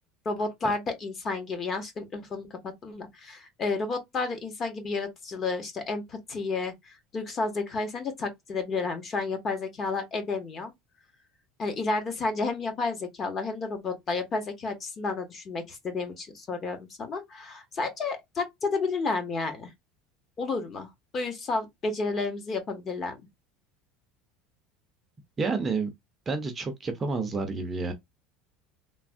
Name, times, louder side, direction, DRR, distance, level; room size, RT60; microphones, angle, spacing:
voice 1, 0.2-10.7 11.6-19.7 20.4-23.2, left 3 dB, 25° left, 0.7 m, -31 dB
voice 2, 25.4-25.9 26.3-27.9, right 4 dB, 20° right, 0.5 m, -29 dB
3.3 x 2.0 x 2.5 m
cardioid pair, 160°, 0 cm